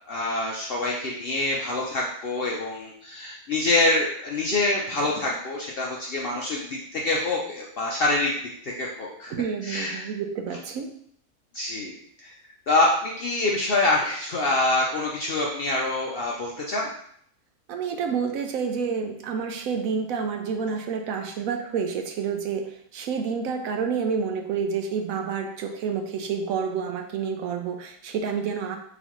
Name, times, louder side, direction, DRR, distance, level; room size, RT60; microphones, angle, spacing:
voice 1, 0.1-9.3 9.6-10.1 11.5-12.3 12.7-16.9, left 2 dB, 60° left, -2 dB, 0.6 m, -26 dB
voice 2, 9.3-10.9 17.7-28.8, right 6 dB, 70° right, 4 dB, 1.0 m, -29 dB
4.0 x 4.0 x 3.0 m, 0.67 s
omnidirectional pair, 1.5 m